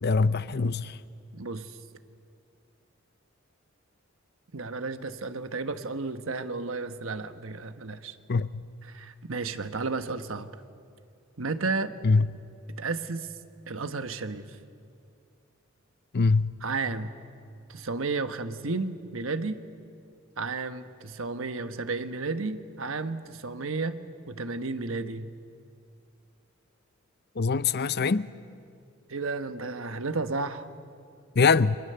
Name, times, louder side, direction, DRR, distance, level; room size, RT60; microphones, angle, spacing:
voice 1, 0.0-1.0 8.3-8.6 12.0-12.3 16.1-16.5 27.4-28.3 31.4-31.8, left 4 dB, 55° left, 0.6 m, -23 dB
voice 2, 1.3-1.8 4.5-8.2 8.9-10.5 11.4-11.9 12.8-13.3 13.7-14.6 16.6-17.1 17.7-19.6 20.4-24.0 24.3-25.3 29.1-30.7, right 3 dB, 70° right, 1.2 m, -32 dB
29.0 x 25.0 x 6.8 m
head